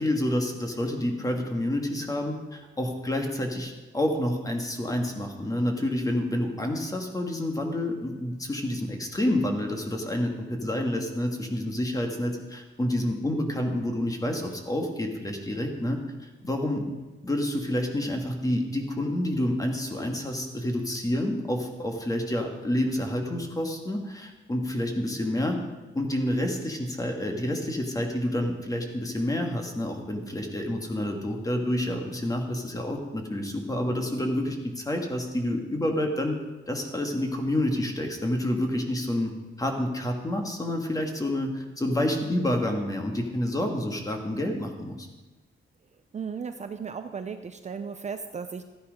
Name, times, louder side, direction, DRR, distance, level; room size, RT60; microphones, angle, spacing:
voice 1, 0.0-16.9 17.2-25.6 25.9-36.4 36.7-39.3 39.6-45.1, left 1 dB, 15° left, 3 dB, 1.6 m, -28 dB
voice 2, 46.1-48.6, right 6 dB, 35° right, 8 dB, 0.5 m, -35 dB
14.0 x 9.9 x 5.1 m, 1.2 s
wide cardioid pair, 155°, 21 cm